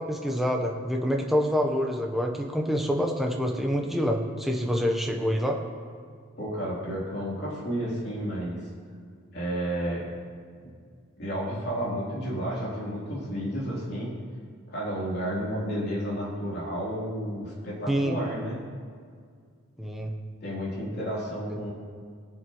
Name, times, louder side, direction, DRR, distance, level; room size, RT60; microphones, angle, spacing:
voice 1, 0.0-5.6 17.9-18.2 19.8-20.1, equal, ahead, 1 dB, 0.8 m, -26 dB
voice 2, 6.4-8.6 9.3-10.0 11.2-14.1 14.7-18.6 20.4-21.7, equal, 50° left, -6 dB, 3.2 m, -31 dB
19.5 x 7.3 x 3.0 m, 2.1 s
head